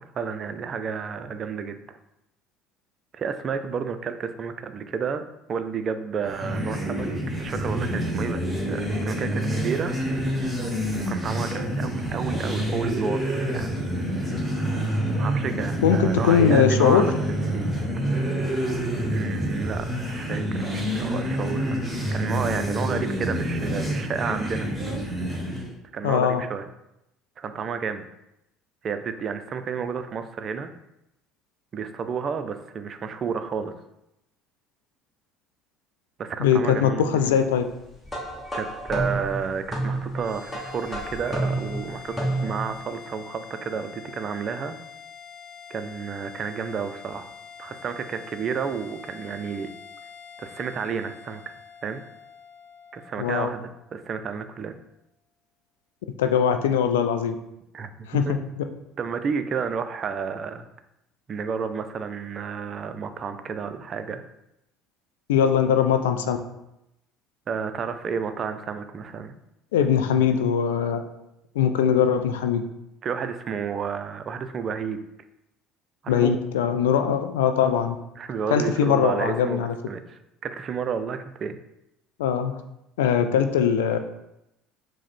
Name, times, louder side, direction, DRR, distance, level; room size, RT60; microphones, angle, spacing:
voice 1, 0.1-1.8 3.1-5.2 5.5-10.3 10.9-13.8 15.2-17.7 19.1-21.8 22.1-24.7 25.9-26.7 27.4-28.1 28.8-30.7 31.7-33.7 36.2-37.4 38.5-44.8 45.7-47.3 47.6-49.7 50.4-51.4 51.8-52.0 52.9-54.8 57.7-58.3 59.0-60.7 61.3-64.2 67.5-69.3 73.0-75.0 76.0-76.3 78.2-80.0 80.4-81.6, right 6 dB, 40° right, 9 dB, 0.4 m, -31 dB
sound 1, 6.2-25.7, equal, 10° right, 1.4 m, -27 dB
voice 2, 15.8-17.1 26.0-26.4 36.4-37.6 53.2-53.5 56.2-57.3 58.1-58.3 58.6-58.7 65.3-66.4 69.7-71.0 71.5-72.6 76.1-78.0 78.5-79.7 82.2-82.6 83.0-84.0, left 8 dB, 75° left, 7 dB, 0.3 m, -21 dB
sound 2, 38.0-42.8, right 1 dB, 10° left, 1.2 m, -30 dB
sound 3, 40.1-54.7, left 7 dB, 50° left, 0.7 m, -45 dB
4.7 x 2.1 x 4.3 m, 0.86 s
figure-of-eight pair, 60°, 0 cm